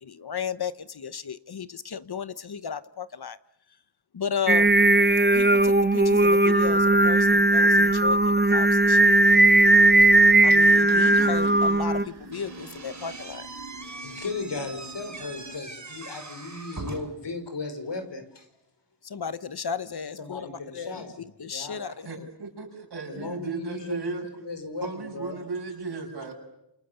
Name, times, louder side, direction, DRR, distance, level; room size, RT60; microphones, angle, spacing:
voice 1, 0.0-3.4 4.1-4.8 5.3-9.4 10.4-13.4 19.0-21.1 21.4-22.3, left 7 dB, 65° left, 14 dB, 1.0 m, -34 dB
Singing, 4.5-12.0, right 2 dB, 25° right, 1.0 m, -18 dB
sound 1, 6.0-15.6, right 3 dB, 85° right, 4.0 m, -47 dB
Slam / Squeak, 12.3-17.3, right 3 dB, 45° right, 5.7 m, -41 dB
voice 2, 13.8-18.5 20.2-21.8 23.0-25.4, left 3 dB, 90° left, 8 dB, 5.3 m, -36 dB
voice 3, 21.8-24.3 24.8-26.3, right 4 dB, 70° right, -1 dB, 6.9 m, -35 dB
28.5 x 28.0 x 7.0 m, 0.83 s
wide cardioid pair, 105°, 41 cm